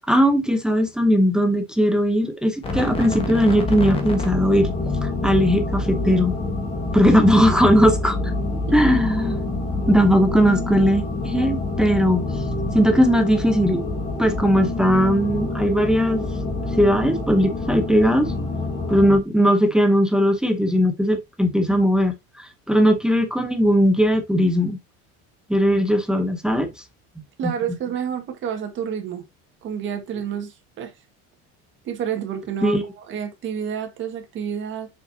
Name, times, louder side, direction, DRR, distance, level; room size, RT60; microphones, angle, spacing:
voice 1, 0.0-4.7 5.0-6.3 6.9-8.2 8.7-9.4 9.9-12.3 12.7-13.8 14.2-16.2 16.8-18.3 18.9-24.8 25.5-26.7 27.4-27.5 32.6-32.8, equal, ahead, 0.7 m, -18 dB
sound 1, 2.6-19.2, left 2 dB, 15° left, 1.2 m, -26 dB
voice 2, 27.4-29.2 29.6-30.9 31.9-34.9, right 8 dB, 35° right, 1.6 m, -29 dB
6.6 x 5.7 x 2.7 m
cardioid pair, 165°, 32 cm